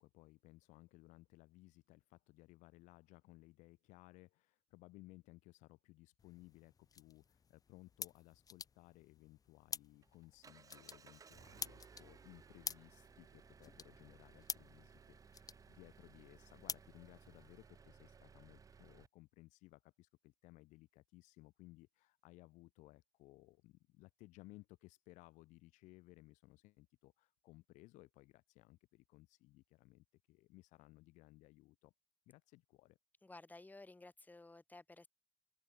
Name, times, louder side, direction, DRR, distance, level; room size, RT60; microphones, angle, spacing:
voice 1, 0.0-31.9 32.3-33.0, left 20 dB, 70° left, 0.8 m, -61 dB
sound 1, 6.2-17.7, left 6 dB, 30° left, 0.6 m, -51 dB
Engine, 9.5-19.1, right 6 dB, 25° right, 0.6 m, -61 dB
voice 2, 33.2-35.1, left 2 dB, 15° left, 2.4 m, -55 dB
open air
supercardioid pair, 85°, 13 cm